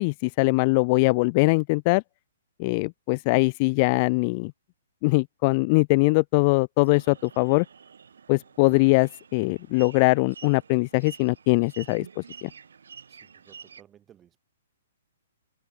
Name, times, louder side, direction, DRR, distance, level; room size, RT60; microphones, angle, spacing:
voice 1, 0.0-2.0 2.6-4.5 5.0-7.7 8.3-12.5, left 28 dB, 25° left, 0.4 m, -22 dB
sound 1, 6.8-13.8, right 6 dB, 90° right, 3.6 m, -48 dB
voice 2, 13.1-14.4, right 10 dB, 15° right, 3.3 m, -57 dB
hypercardioid pair, 170°, 0 cm